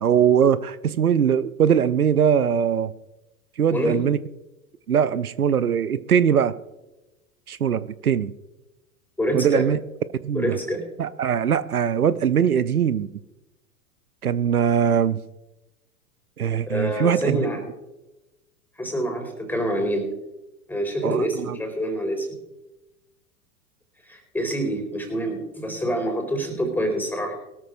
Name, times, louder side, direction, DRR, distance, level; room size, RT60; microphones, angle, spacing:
voice 1, 0.0-2.9 3.6-4.2 4.9-6.5 7.5-8.3 9.3-9.8 10.2-10.6 11.0-13.1 14.2-15.2 16.4-17.5 21.0-21.6, right 8 dB, 75° right, 0.7 m, -21 dB
voice 2, 9.2-9.7 10.3-10.9 16.7-17.6 18.8-20.1 20.7-22.4 24.0-27.3, equal, 5° left, 4.1 m, -26 dB
21.5 x 13.5 x 2.5 m
figure-of-eight pair, 90°, 44 cm